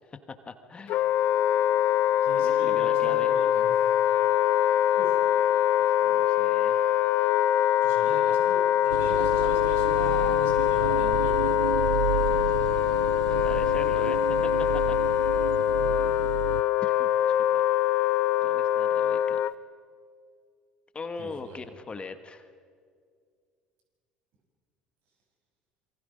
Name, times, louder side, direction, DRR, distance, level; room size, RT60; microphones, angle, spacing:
voice 1, 0.1-1.0 2.4-3.3 6.0-6.9 13.2-15.0 16.8-17.1 17.4-17.6 18.4-19.4 20.9-22.5, left 4 dB, 25° left, 9 dB, 1.5 m, -41 dB
Wind instrument woodwind instrument, 0.9-19.5, left 12 dB, 55° left, 0.7 m, -23 dB
voice 2, 2.2-3.7 5.0-5.2 7.8-11.7 12.4-12.5 13.2-13.3 21.2-21.6, right 2 dB, 60° right, 0 dB, 7.7 m, -41 dB
sound 1, 8.9-16.6, right 13 dB, 75° right, 0.5 m, -32 dB
27.5 x 23.5 x 5.2 m, 2.2 s
hypercardioid pair, 65°, 4 cm